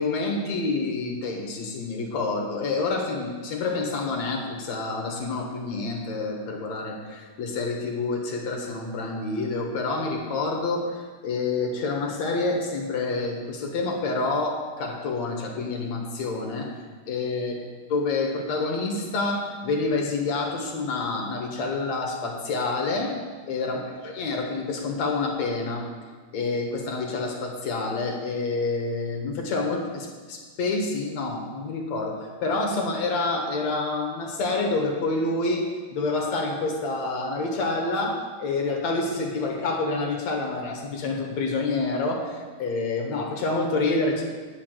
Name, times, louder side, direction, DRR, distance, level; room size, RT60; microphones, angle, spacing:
voice 1, 0.0-10.9 11.2-16.7 17.1-17.5 17.9-23.1 23.5-25.9 26.3-44.2, left 3 dB, 55° left, 1 dB, 2.2 m, -28 dB
9.7 x 7.1 x 9.0 m, 1.4 s
omnidirectional pair, 4.5 m